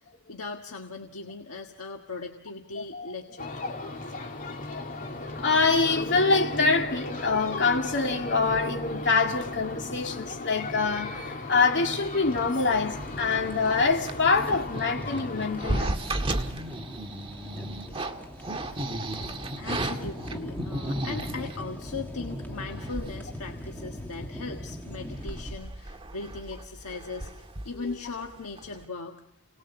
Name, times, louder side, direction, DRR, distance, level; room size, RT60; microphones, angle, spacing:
voice 1, 0.3-3.5 19.6-29.2, left 4 dB, 70° left, 1.6 m, -39 dB
voice 2, 2.8-3.1 3.8-4.0 5.4-15.9 27.8-27.9, left 4 dB, 55° left, 2.6 m, -25 dB
sound 1, 3.4-15.9, left 2 dB, 40° left, 2.8 m, -37 dB
sound 2, 12.2-25.5, equal, 10° left, 2.1 m, -40 dB
sound 3, 13.6-21.6 22.3-22.4 22.7-23.3 23.6-23.7 24.1-24.4 24.8-28.3 28.6-28.8, right 1 dB, 25° right, 1.7 m, -34 dB
30.0 x 19.5 x 7.2 m
head